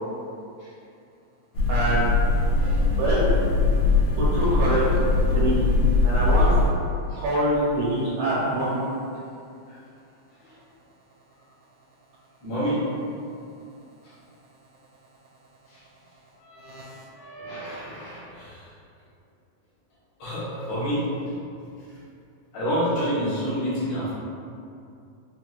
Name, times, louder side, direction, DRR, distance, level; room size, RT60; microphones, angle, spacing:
sound 1, 1.5-6.7, left 3 dB, 85° left, 2.3 m, -21 dB
voice 1, 1.7-2.1 3.0-3.4 4.2-4.8 5.1-5.8 6.0-6.6 7.2-8.9 16.6-17.0, right 1 dB, 75° right, -7 dB, 2.1 m, -25 dB
voice 2, 12.4-12.8 15.7-15.8 16.5-18.6 20.2-21.1 22.5-24.1, equal, 70° left, -10 dB, 2.6 m, -29 dB
5.8 x 2.7 x 2.2 m, 2.5 s
omnidirectional pair, 3.4 m